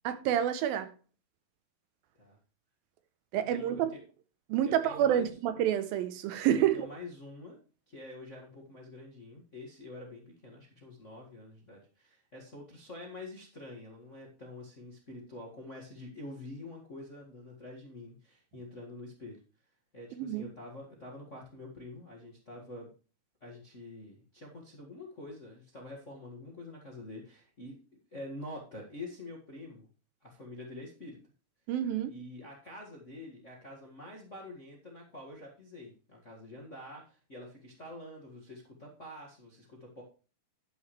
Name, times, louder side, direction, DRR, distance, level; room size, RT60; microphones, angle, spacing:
voice 1, 0.1-0.9 3.3-3.9 4.5-6.9 20.2-20.5 31.7-32.1, right 10 dB, 80° right, 2.4 m, -28 dB
voice 2, 3.5-4.0 4.6-5.3 6.7-7.6 7.9-19.4 19.9-22.9 23.4-27.8 28.1-29.9 30.2-31.2 32.1-40.0, left 2 dB, 35° left, 1.1 m, -46 dB
10.5 x 9.5 x 3.2 m
omnidirectional pair, 4.4 m